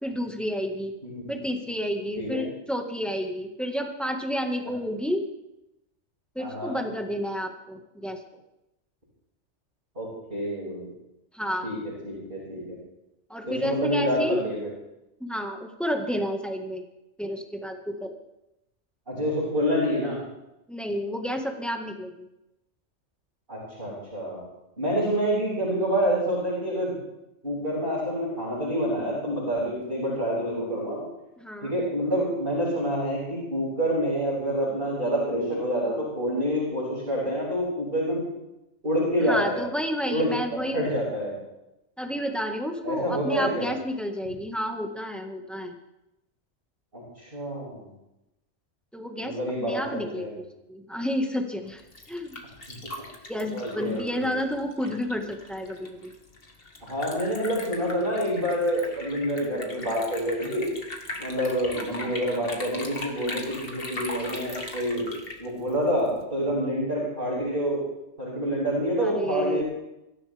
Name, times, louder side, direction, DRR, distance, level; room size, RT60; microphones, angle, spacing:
voice 1, 0.0-0.9 1.3-5.3 6.4-8.2 11.3-11.7 13.3-14.4 15.2-16.9 17.2-18.2 20.7-22.3 31.4-31.7 39.2-40.9 42.0-45.8 48.9-51.8 52.1-52.4 53.3-56.1 61.8-62.1 69.0-69.6, equal, ahead, 3 dB, 1.7 m, -30 dB
voice 2, 6.4-6.7 9.9-10.9 11.6-11.8 12.0-12.8 13.5-14.6 19.1-20.2 23.5-24.4 24.8-27.0 27.4-31.0 31.6-38.2 38.8-39.6 40.1-40.3 40.7-41.4 42.8-43.7 46.9-47.8 49.2-50.3 52.7-52.8 53.5-54.3 56.9-60.7 61.2-65.1 65.4-67.8 68.2-69.6, equal, 50° right, -8 dB, 6.5 m, -27 dB
Liquid, 51.7-66.2, left 2 dB, 55° left, 2.1 m, -39 dB
24.0 x 14.5 x 3.6 m, 0.91 s
omnidirectional pair, 1.2 m